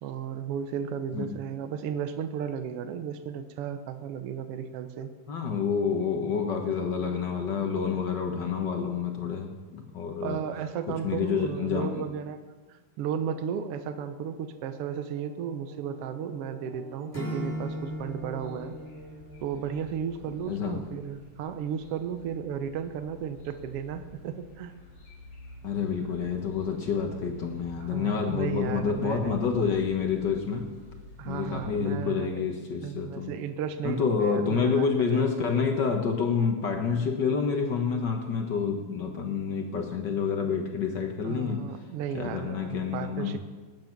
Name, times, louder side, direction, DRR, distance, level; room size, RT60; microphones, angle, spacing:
voice 1, 0.0-5.1 10.2-12.4 12.7-18.7 19.4-24.7 27.8-29.4 31.2-32.4 32.8-35.5 41.2-43.4, right 8 dB, 75° right, 9 dB, 1.3 m, -34 dB
voice 2, 5.3-10.4 10.9-12.0 20.5-20.8 25.6-30.7 31.2-33.3 33.8-41.7 42.1-43.4, left 6 dB, 60° left, 4 dB, 1.2 m, -28 dB
sound 1, 13.1-21.1, right 1 dB, 45° right, 4.5 m, -50 dB
Acoustic guitar / Strum, 17.1-20.2, equal, 5° left, 2.1 m, -38 dB
sound 2, 17.3-31.7, left 1 dB, 90° left, 5.7 m, -49 dB
20.0 x 9.3 x 5.9 m, 1.3 s
omnidirectional pair, 3.7 m